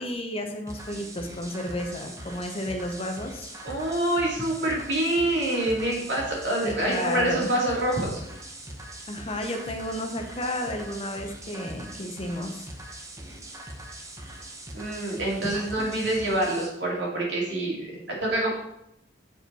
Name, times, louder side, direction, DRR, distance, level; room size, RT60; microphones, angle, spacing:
voice 1, 0.0-3.5 6.6-7.5 9.1-12.7 15.8-15.9 17.9-18.0, left 1 dB, 35° left, 4 dB, 0.8 m, -32 dB
sound 1, 0.7-16.7, right 1 dB, 20° right, 0.8 m, -42 dB
voice 2, 3.6-8.2 14.7-18.5, right 1 dB, 80° right, -4 dB, 2.5 m, -26 dB
7.0 x 4.9 x 4.2 m, 0.81 s
head